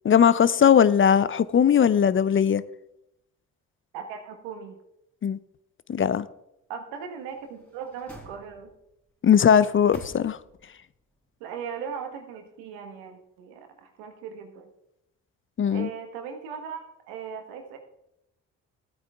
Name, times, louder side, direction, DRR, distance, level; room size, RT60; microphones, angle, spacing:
voice 1, 0.0-2.6 5.2-5.4 5.9-6.3 9.2-10.4 15.6-15.9, left 8 dB, 35° left, 0.5 m, -19 dB
voice 2, 3.9-4.7 6.7-8.7 11.4-14.7 15.7-16.8 17.1-17.8, right 7 dB, 85° right, 1.5 m, -38 dB
sound 1, 7.2-8.9 9.4-10.7 11.1-11.2, left 1 dB, 5° left, 3.7 m, -48 dB
14.0 x 8.8 x 3.5 m
hypercardioid pair, 50°, 36 cm